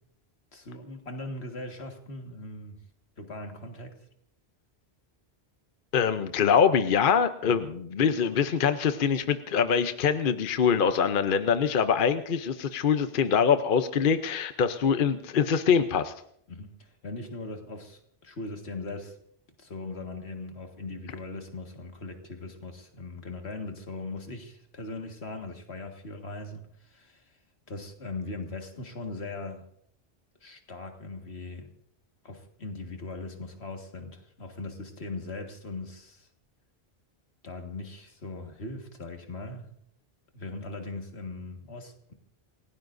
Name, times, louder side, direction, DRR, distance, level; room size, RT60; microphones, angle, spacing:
voice 1, 0.5-2.8 3.2-4.0 7.4-7.6 16.5-19.2 19.6-27.4 27.7-29.6 30.4-31.7 32.2-36.3 37.4-39.7 40.3-42.1, left 2 dB, 85° left, 4 dB, 2.1 m, -39 dB
voice 2, 5.9-16.1, left 7 dB, 55° left, 9 dB, 0.9 m, -24 dB
28.5 x 17.0 x 2.6 m, 0.70 s
omnidirectional pair, 1.1 m